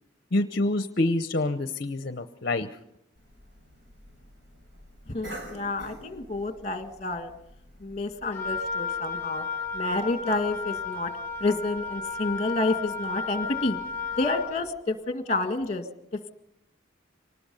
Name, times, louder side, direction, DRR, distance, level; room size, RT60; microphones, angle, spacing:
voice 1, 0.3-2.7, left 2 dB, 55° left, 10 dB, 0.8 m, -26 dB
Cough, 3.2-8.6, equal, 80° right, 5.5 m, -47 dB
voice 2, 5.1-7.3 7.8-9.5 9.7-11.1 11.4-13.8 14.2-15.9, left 2 dB, 35° left, 8 dB, 1.8 m, -29 dB
Wind instrument woodwind instrument, 8.3-14.6, left 5 dB, 10° left, 4.3 m, -33 dB
25.0 x 19.5 x 5.4 m, 0.80 s
head